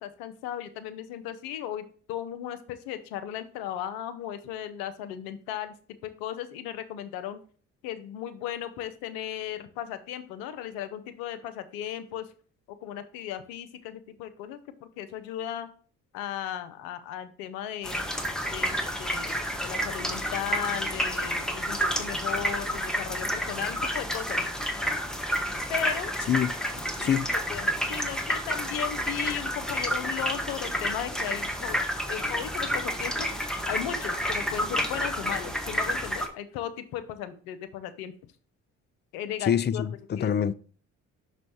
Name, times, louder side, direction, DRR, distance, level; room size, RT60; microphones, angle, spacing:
voice 1, 0.0-5.7 6.0-7.4 7.8-12.3 12.8-15.7 16.1-18.0 18.5-24.4 25.7-26.1 26.7-33.3 33.7-38.1 39.1-39.8 40.2-40.3, left 10 dB, 80° left, 0.7 m, -36 dB
sound 1, 17.8-36.3, equal, ahead, 1.2 m, -30 dB
voice 2, 39.5-40.5, left 8 dB, 30° left, 0.4 m, -25 dB
6.1 x 3.2 x 5.5 m
hypercardioid pair, 55°, 35 cm